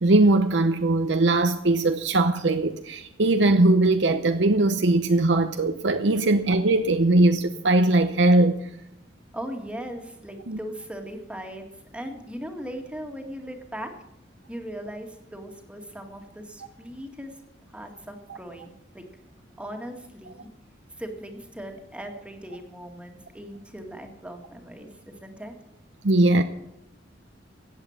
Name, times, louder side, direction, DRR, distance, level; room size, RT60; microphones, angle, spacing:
voice 1, 0.0-8.6 10.5-10.6 26.0-26.4, right 2 dB, 70° right, 0.8 m, -20 dB
voice 2, 9.3-13.9 14.5-17.3 17.7-19.0 19.6-20.5 21.0-24.9 25.2-25.5, equal, 5° right, 1.9 m, -38 dB
15.0 x 8.8 x 7.2 m
head